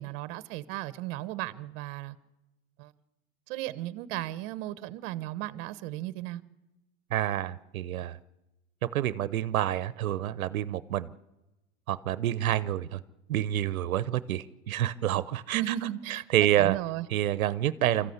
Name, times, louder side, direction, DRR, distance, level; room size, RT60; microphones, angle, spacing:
voice 1, 0.0-2.1 2.8-2.9 3.5-6.4 15.5-17.1, right 14 dB, 45° right, 1.1 m, -35 dB
voice 2, 7.1-8.2 8.8-11.1 11.9-13.0 13.3-15.6 16.3-16.8 17.1-18.1, right 12 dB, 90° right, 0.9 m, -28 dB
24.5 x 14.0 x 8.1 m
supercardioid pair, 140°, 41 cm